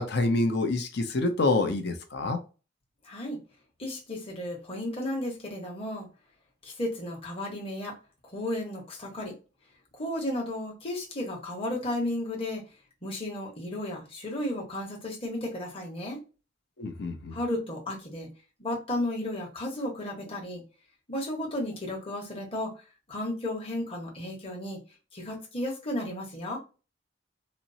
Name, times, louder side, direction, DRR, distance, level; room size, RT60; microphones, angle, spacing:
voice 1, 0.0-2.4 16.8-17.3, left 2 dB, 60° left, 0.7 m, -27 dB
voice 2, 3.0-3.4 3.8-6.1 6.6-7.9 8.2-9.3 9.9-12.6 13.0-16.2 17.3-18.3 18.6-20.6 21.1-22.8 23.1-24.8 25.1-26.6, left 1 dB, 30° left, 1.1 m, -33 dB
4.3 x 2.0 x 2.6 m
head